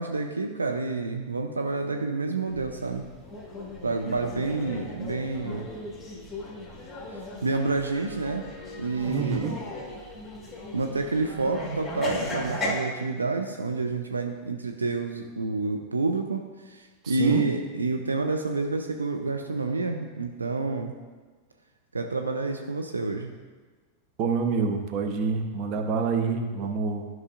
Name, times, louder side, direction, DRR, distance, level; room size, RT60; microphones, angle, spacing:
voice 1, 0.0-3.1 3.8-5.7 7.4-8.5 8.8-9.5 10.7-20.9 21.9-23.3, right 3 dB, 80° right, 4 dB, 0.4 m, -29 dB
sound 1, 2.5-12.7, left 1 dB, 10° left, 1.5 m, -37 dB
voice 2, 9.1-9.6 17.0-17.4 24.2-27.1, right 5 dB, 40° right, 4 dB, 0.8 m, -27 dB
12.0 x 6.0 x 2.5 m, 1.4 s
figure-of-eight pair, 90°, 0 cm